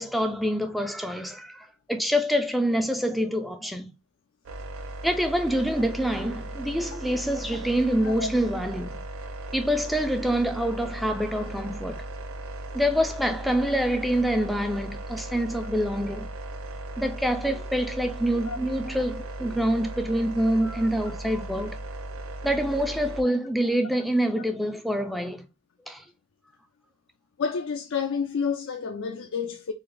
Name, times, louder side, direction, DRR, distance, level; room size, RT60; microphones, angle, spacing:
voice 1, 0.0-3.9 5.0-9.0 9.5-12.1 12.7-16.3 17.0-21.8 22.4-25.4 25.9-26.0, equal, ahead, 0.4 m, -26 dB
sound 1, 4.5-23.2, right 2 dB, 85° right, 0.6 m, -37 dB
voice 2, 20.4-21.1 27.4-29.7, left 6 dB, 65° left, 0.4 m, -30 dB
3.9 x 2.4 x 3.2 m
head